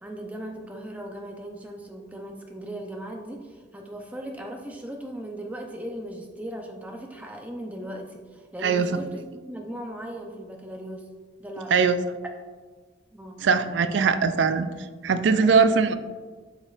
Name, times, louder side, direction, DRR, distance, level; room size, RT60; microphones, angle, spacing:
voice 1, 0.0-9.2 9.5-11.1 11.4-11.8 13.1-13.4 15.4-15.6, right 1 dB, 10° right, 2 dB, 0.6 m, -38 dB
voice 2, 13.4-14.7 15.0-15.9, right 5 dB, 75° right, 11 dB, 0.4 m, -20 dB
8.1 x 5.3 x 2.4 m, 1.5 s
head